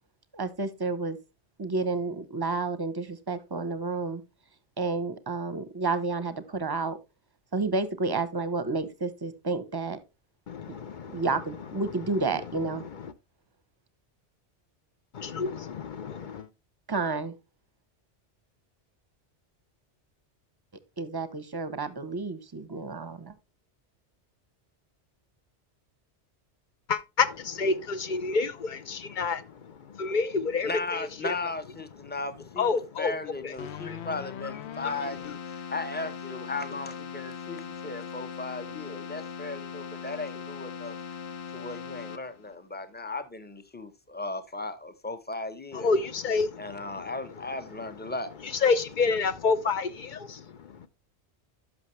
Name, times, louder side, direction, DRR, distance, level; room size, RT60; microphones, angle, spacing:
voice 1, 0.3-1.2 1.6-4.2 4.8-7.0 7.5-10.0 11.1-12.8 16.9-17.3 21.0-23.3, right 3 dB, 25° right, 0.7 m, -30 dB
voice 2, 10.5-11.6 12.6-13.1 15.1-16.5 26.9-31.4 32.6-33.2 33.4-33.5 33.8-34.0 34.8-34.9 45.7-47.1 48.0-48.1 48.4-50.9, left 4 dB, 50° left, 0.7 m, -29 dB
voice 3, 30.6-41.0 41.5-45.9 46.6-48.3, left 3 dB, 10° left, 0.7 m, -36 dB
Keyboard (musical), 33.6-42.6, left 7 dB, 70° left, 1.0 m, -40 dB
11.5 x 6.0 x 3.1 m
omnidirectional pair, 1.2 m